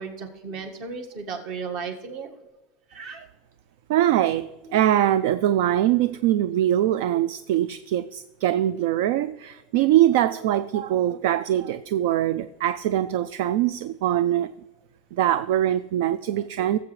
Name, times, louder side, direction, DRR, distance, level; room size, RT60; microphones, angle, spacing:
voice 1, 0.0-2.3 2.9-3.2 4.2-4.3 4.6-4.8 7.1-7.2, right 5 dB, 50° right, 1.5 m, -35 dB
voice 2, 3.9-14.5 15.1-16.8, right 12 dB, 65° right, 0.3 m, -22 dB
18.0 x 7.6 x 3.2 m
supercardioid pair, 160°, 0 cm